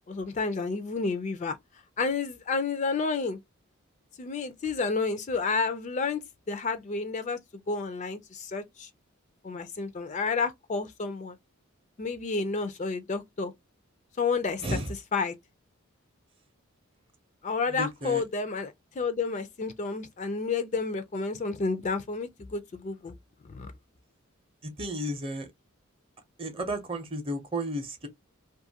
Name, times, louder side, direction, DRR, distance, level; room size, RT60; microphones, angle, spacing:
voice 1, 0.1-1.6 2.0-3.4 4.2-6.2 6.5-7.4 7.7-8.9 9.4-11.4 12.0-13.5 14.2-15.3 17.4-23.1 23.5-23.7, left 4 dB, 35° left, 0.4 m, -30 dB
voice 2, 14.6-14.9 17.6-18.2 24.6-25.5 26.4-28.1, right 1 dB, 25° right, 0.6 m, -33 dB
2.5 x 2.4 x 2.7 m
head